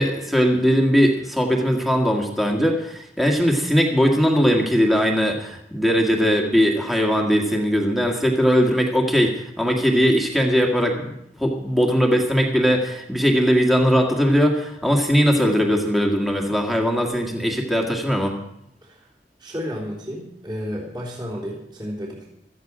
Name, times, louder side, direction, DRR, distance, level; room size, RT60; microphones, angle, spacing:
voice 1, 0.0-11.1 11.4-18.3, equal, ahead, 0 dB, 1.9 m, -20 dB
voice 2, 19.4-22.3, equal, 25° right, -5 dB, 3.6 m, -32 dB
16.5 x 13.5 x 5.0 m, 0.78 s
head